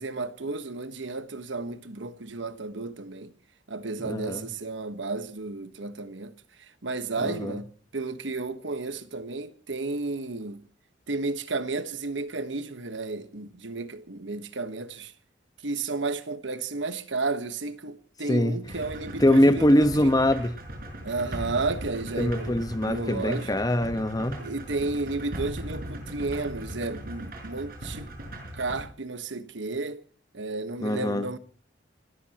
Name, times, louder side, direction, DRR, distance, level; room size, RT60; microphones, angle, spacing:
voice 1, 0.0-3.3 3.7-6.3 6.8-7.7 7.9-10.6 11.1-15.1 15.6-20.1 21.0-23.5 24.4-28.1 28.5-30.0 30.3-31.4, right 3 dB, 75° right, 1.3 m, -32 dB
voice 2, 4.0-4.4 7.2-7.6 18.3-18.6 19.2-20.5 22.2-24.5 30.8-31.3, left 1 dB, 20° left, 1.2 m, -23 dB
sound 1, 18.6-28.8, right 1 dB, 55° right, 5.9 m, -38 dB
29.0 x 13.5 x 3.0 m
head